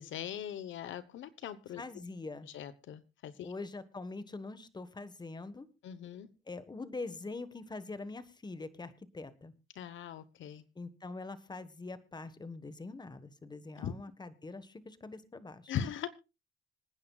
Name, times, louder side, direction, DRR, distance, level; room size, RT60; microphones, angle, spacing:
voice 1, 0.0-1.8 2.4-3.5 5.8-6.3 9.7-10.6 13.8-13.9 15.7-16.1, left 9 dB, 75° left, 14 dB, 1.1 m, -40 dB
voice 2, 1.8-2.5 3.4-5.7 6.5-9.5 10.7-15.7, left 3 dB, 20° left, 12 dB, 1.4 m, -44 dB
26.0 x 9.7 x 2.4 m, 0.29 s
cardioid pair, 90°, 20 cm